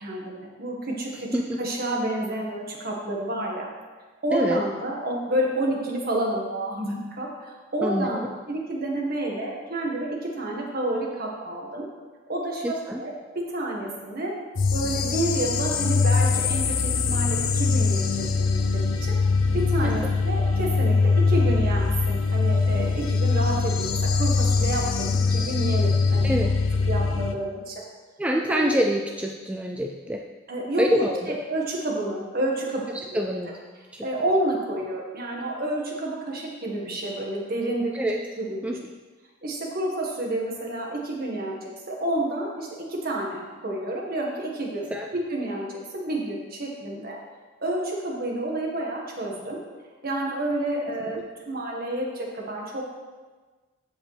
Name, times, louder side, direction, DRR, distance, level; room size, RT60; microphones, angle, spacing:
voice 1, 0.0-1.3 1.6-3.7 4.2-11.9 12.3-14.3 14.7-19.2 19.5-26.3 26.9-27.8 28.5-28.8 30.5-31.1 31.5-32.8 33.1-33.3 34.0-38.1 38.4-38.7 39.4-47.2 47.6-49.6 50.0-52.8, right 1 dB, 45° right, -1 dB, 1.6 m, -29 dB
voice 2, 1.1-1.6 4.3-4.6 7.8-8.1 12.6-13.0 19.8-19.9 26.2-26.5 28.2-30.2 30.8-31.4 33.1-33.5 33.9-34.1 37.9-38.2 38.6-38.7 44.9-45.1, equal, 5° right, 1 dB, 0.3 m, -26 dB
sound 1, 14.6-27.4, left 4 dB, 65° left, 0.6 m, -22 dB
14.5 x 5.1 x 3.4 m, 1.3 s
head